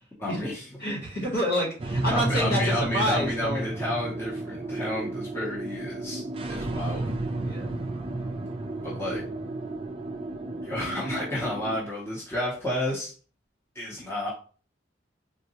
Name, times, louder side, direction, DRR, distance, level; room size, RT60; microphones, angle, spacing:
voice 1, 0.2-0.6 2.1-6.2 6.5-7.1 8.8-9.2 10.6-13.1 13.7-14.3, left 1 dB, 15° left, -6 dB, 0.7 m, -31 dB
voice 2, 0.8-3.7 7.4-7.7, equal, 50° left, -1 dB, 1.2 m, -28 dB
sound 1, 1.8-11.8, right 2 dB, 30° right, 0.3 m, -32 dB
3.6 x 2.2 x 2.7 m, 0.39 s
head